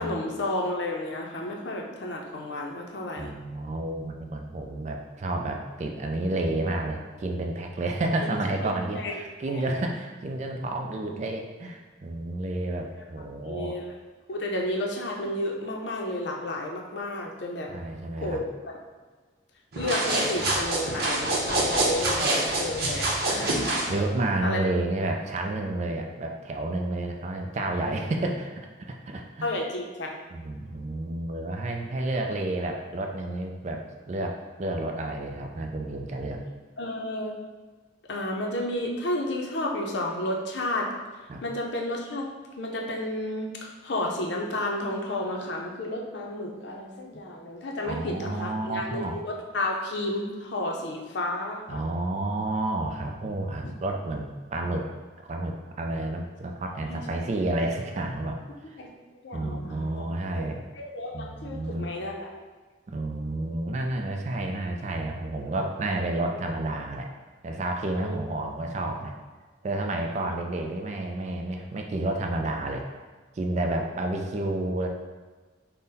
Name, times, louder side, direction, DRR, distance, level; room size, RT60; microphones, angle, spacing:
voice 1, 0.0-3.3 8.6-9.1 9.5-9.8 13.4-13.9 14.3-17.7 18.2-18.5 19.8-23.6 24.4-24.6 27.8-27.9 29.4-30.1 36.8-37.3 38.1-40.9 41.4-42.3 42.6-51.8 53.6-53.7 56.9-57.0 58.8-58.9 59.2-59.9 60.8-62.3 68.0-68.2 70.1-70.3, left 1 dB, 70° left, 0 dB, 0.5 m, -32 dB
voice 2, 3.2-13.8 17.7-18.4 23.9-28.5 28.8-29.5 30.3-36.4 41.3-41.4 47.8-49.2 51.7-54.9 55.3-58.4 58.7-58.8 59.3-60.6 61.1-61.9 62.9-67.1 67.4-69.1 69.6-72.8 73.3-74.9, right 2 dB, 35° right, 3 dB, 0.3 m, -30 dB
sound 1, 19.7-23.9, right 1 dB, 50° right, 0.7 m, -26 dB
3.8 x 2.1 x 4.0 m, 1.4 s
head